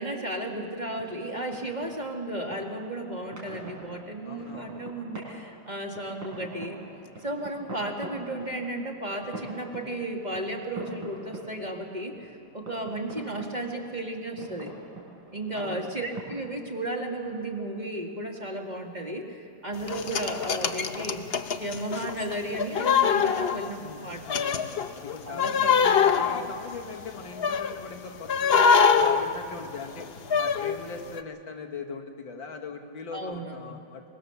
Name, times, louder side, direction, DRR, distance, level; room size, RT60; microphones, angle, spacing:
voice 1, 0.0-6.8 7.2-14.7 15.3-21.3 21.6-24.2 25.3-25.7 33.1-33.7, right 1 dB, 25° right, 1 dB, 1.9 m, -34 dB
sound 1, 0.5-19.8, right 1 dB, 80° right, 5.3 m, -46 dB
voice 2, 4.2-4.8 15.5-16.2 19.9-20.1 23.8-28.7 28.9-30.1 30.4-34.0, left 4 dB, 90° left, 3 dB, 2.5 m, -41 dB
sound 2, 19.9-23.9 24.3-27.8 28.3-30.8 31.2-31.3, left 6 dB, 50° left, 0.7 m, -24 dB
24.0 x 21.0 x 6.9 m, 2.5 s
omnidirectional pair, 2.0 m